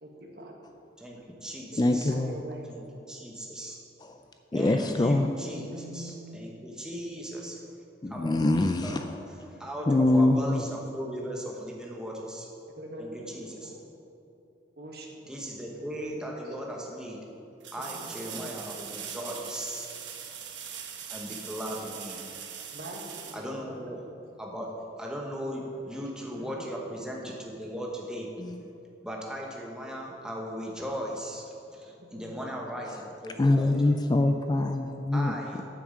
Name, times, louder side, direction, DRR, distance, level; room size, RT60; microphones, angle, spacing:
voice 1, 0.0-0.5 1.7-2.7 5.5-6.5 9.8-10.3 10.8-10.9 12.6-13.7 14.8-15.1 15.7-15.8 18.0-18.5 22.7-23.8 25.8-25.9 26.3-26.7 32.0-32.5, right 1 dB, 55° right, 0 dB, 1.5 m, -43 dB
voice 2, 1.0-2.1 2.7-3.8 4.5-7.6 8.1-8.4 8.8-9.0 9.3-12.5 13.0-13.7 15.3-17.2 17.7-19.9 21.1-22.2 23.3-24.0 24.4-28.3 29.0-33.8 35.1-35.7, equal, 5° right, -2 dB, 1.1 m, -38 dB
voice 3, 1.8-2.3 4.5-5.3 8.0-9.0 9.9-10.6 28.4-28.5 33.4-35.3, left 2 dB, 20° left, 6 dB, 0.3 m, -24 dB
industrial welding long, 17.6-24.2 27.1-27.2, right 8 dB, 80° right, 1.1 m, -41 dB
8.6 x 6.1 x 7.4 m, 2.8 s
head